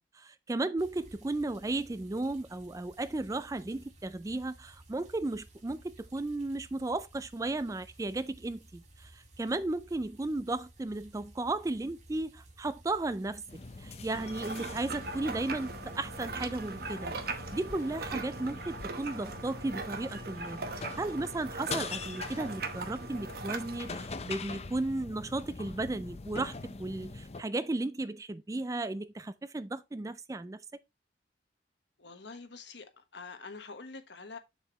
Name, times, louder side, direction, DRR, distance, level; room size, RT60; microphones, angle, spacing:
voice 1, 0.1-13.4 13.8-30.6, right 2 dB, 20° right, 0.3 m, -35 dB
sound 1, 0.8-18.1, right 1 dB, 40° right, 1.8 m, -56 dB
sound 2, 13.5-27.4, left 3 dB, 35° left, 0.6 m, -43 dB
sound 3, 14.1-24.0, right 4 dB, 55° right, 1.0 m, -40 dB
voice 2, 32.0-34.4, left 4 dB, 70° left, 1.3 m, -46 dB
7.0 x 6.9 x 3.0 m
head